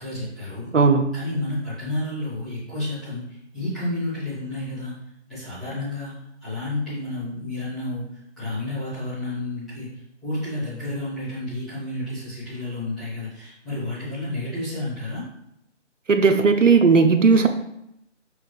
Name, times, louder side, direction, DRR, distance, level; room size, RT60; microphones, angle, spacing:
voice 1, 0.0-0.7 1.1-4.9 5.3-6.1 6.4-15.2, left 2 dB, ahead, -18 dB, 1.5 m, -31 dB
voice 2, 0.7-1.1 16.1-17.5, right 4 dB, 85° right, 7 dB, 0.9 m, -16 dB
6.7 x 3.3 x 4.8 m, 0.79 s
figure-of-eight pair, 165°, 36 cm